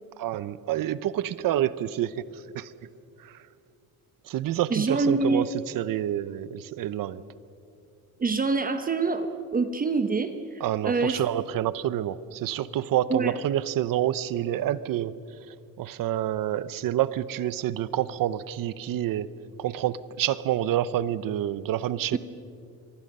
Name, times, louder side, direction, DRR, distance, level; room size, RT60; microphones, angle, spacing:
voice 1, 0.2-2.7 3.2-3.4 4.3-5.5 5.7-7.2 10.6-15.2 15.5-19.3 19.6-22.2, right 12 dB, 70° right, 16 dB, 0.8 m, -28 dB
voice 2, 4.7-5.5 8.2-9.3 9.5-11.2 13.1-13.4, right 4 dB, 25° right, 8 dB, 0.9 m, -25 dB
27.5 x 23.5 x 5.5 m, 2.4 s
cardioid pair, 160°, 35 cm